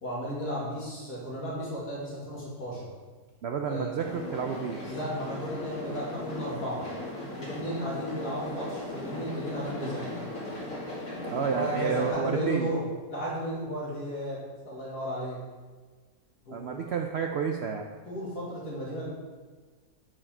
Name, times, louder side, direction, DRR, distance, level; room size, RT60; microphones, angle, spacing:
voice 1, 0.0-2.9 3.7-3.9 4.9-6.9 7.4-10.1 11.5-12.8 13.1-15.4 16.4-16.8 18.1-19.1, equal, 90° left, -6 dB, 2.9 m, -34 dB
voice 2, 3.4-4.9 11.3-12.7 16.5-17.9, right 6 dB, 75° right, 4 dB, 0.6 m, -30 dB
sound 1, 4.0-12.1, left 1 dB, 60° left, 2.9 m, -38 dB
8.7 x 4.8 x 4.4 m, 1.4 s
omnidirectional pair, 1.6 m